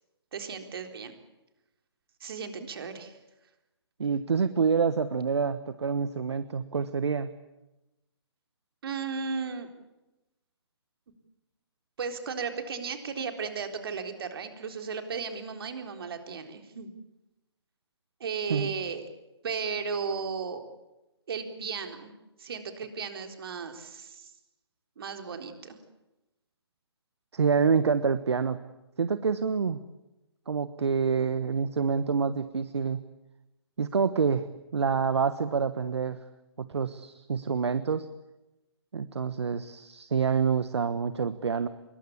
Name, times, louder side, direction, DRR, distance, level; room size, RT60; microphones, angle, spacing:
voice 1, 0.3-1.2 2.2-3.2 8.8-9.7 12.0-16.9 18.2-19.1 19.4-20.7 21.3-22.1 22.4-24.3 25.0-25.8, right 5 dB, 55° right, 5 dB, 3.9 m, -35 dB
voice 2, 4.0-7.3 18.5-18.7 27.3-28.6 29.0-29.8 30.5-33.0 33.8-34.5 34.7-36.2 36.6-38.1 38.9-41.7, right 5 dB, 75° right, 12 dB, 1.3 m, -27 dB
26.0 x 22.5 x 8.5 m, 0.99 s
hypercardioid pair, 140°, 14 cm